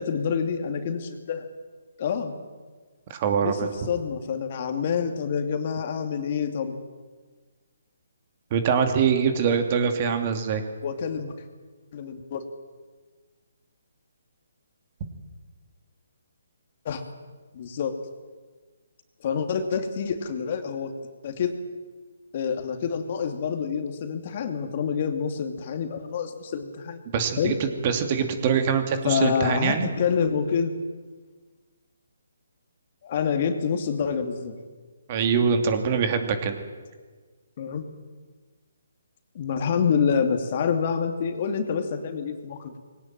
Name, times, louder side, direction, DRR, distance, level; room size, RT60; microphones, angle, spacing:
voice 1, 0.0-1.5 2.0-2.4 3.4-6.7 10.8-11.3 11.9-12.4 16.8-17.0 17.5-17.9 19.2-20.9 21.2-21.5 22.3-27.0 27.4-27.6 29.0-30.7 33.0-34.5 37.6-37.8 39.3-42.8, left 6 dB, 40° left, 7 dB, 2.5 m, -27 dB
voice 2, 3.1-3.7 8.5-10.6 27.1-29.9 35.1-36.6, right 6 dB, 35° right, 6 dB, 2.7 m, -24 dB
21.5 x 17.5 x 9.1 m, 1.4 s
figure-of-eight pair, 145°, 0 cm